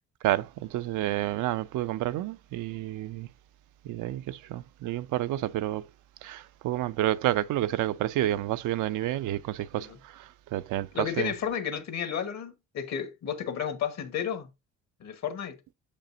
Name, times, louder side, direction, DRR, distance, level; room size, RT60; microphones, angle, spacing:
voice 1, 0.2-3.3 3.8-5.9 6.2-11.3, right 14 dB, 85° right, 0.5 m, -30 dB
voice 2, 10.9-14.5 15.0-15.6, left 8 dB, 65° left, 1.3 m, -32 dB
6.7 x 5.3 x 2.7 m
cardioid pair, 90°, 30 cm